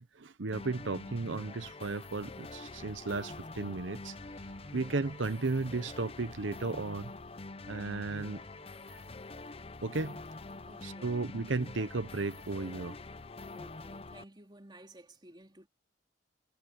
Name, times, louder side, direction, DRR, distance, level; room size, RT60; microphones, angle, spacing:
voice 1, 0.0-4.1 4.7-7.1 7.7-8.4 8.9-9.0 9.8-10.2 10.8-13.0, right 3 dB, 70° right, 0.8 m, -34 dB
sound 1, 0.5-14.2, left 3 dB, 30° left, 0.7 m, -46 dB
sound 2, 4.0-11.0 11.3-14.0, right 1 dB, 85° right, 5.9 m, -63 dB
voice 2, 10.7-11.4 13.5-15.7, right 1 dB, 25° right, 3.5 m, -55 dB
head